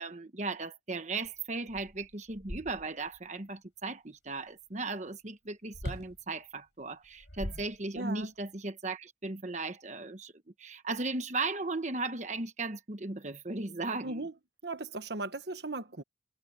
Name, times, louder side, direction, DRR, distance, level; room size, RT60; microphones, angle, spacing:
voice 1, 0.0-10.3 10.6-14.2, right 3 dB, 40° right, 1.2 m, -36 dB
sound 1, 1.2-1.3 1.7-3.2 5.7-6.2 7.0-8.2, equal, 70° left, 5.3 m, -41 dB
voice 2, 7.9-8.3 14.0-14.3 14.6-16.0, right 2 dB, 65° right, 1.3 m, -37 dB
head